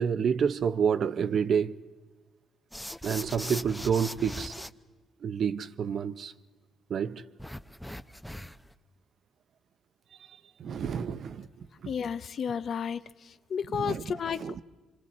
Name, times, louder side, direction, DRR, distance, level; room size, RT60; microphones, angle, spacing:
voice 1, 0.0-1.8 3.0-4.5 5.2-6.3 6.9-7.2 10.6-11.5 11.8-11.9 13.7-14.0 14.3-14.6, right 7 dB, 60° right, 0.6 m, -28 dB
sound 1, 2.7-4.7 7.4-8.7, left 1 dB, 5° left, 0.6 m, -40 dB
voice 2, 11.9-13.0 13.5-14.5, left 7 dB, 55° left, 0.6 m, -31 dB
25.5 x 25.0 x 4.2 m
cardioid pair, 90°, 0 cm